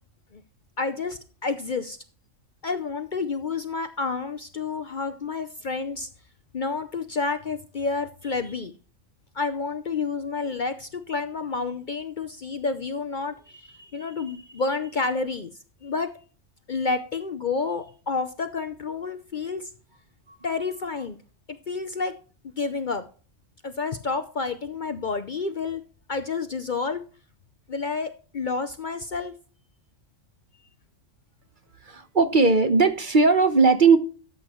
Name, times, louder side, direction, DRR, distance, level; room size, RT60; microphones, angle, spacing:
voice 1, 0.8-2.0 2.6-6.1 6.5-8.7 9.3-15.5 15.8-16.1 16.7-19.7 20.4-21.2 21.7-22.1 22.6-23.0 23.6-25.8 26.1-27.0 27.7-29.3, left 4 dB, 45° left, 0.7 m, -29 dB
voice 2, 31.9-34.0, right 4 dB, 40° right, 1.1 m, -18 dB
13.0 x 7.9 x 3.1 m
omnidirectional pair, 1.3 m